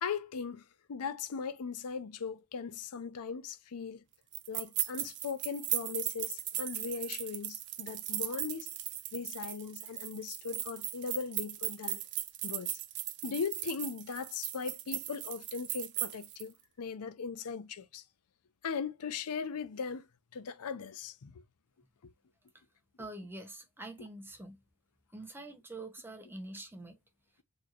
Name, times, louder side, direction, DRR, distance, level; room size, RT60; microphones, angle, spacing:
voice 1, 0.0-0.6 0.9-4.0 4.5-8.7 9.1-12.0 12.4-12.8 13.2-18.0 18.6-20.0 20.3-21.4 22.0-22.1, left 5 dB, 85° left, 0.5 m, -39 dB
sound 1, 4.3-16.4, right 13 dB, 55° right, 0.5 m, -38 dB
voice 2, 23.0-24.6 25.1-26.9, right 2 dB, 10° right, 0.7 m, -45 dB
4.2 x 3.1 x 2.4 m
head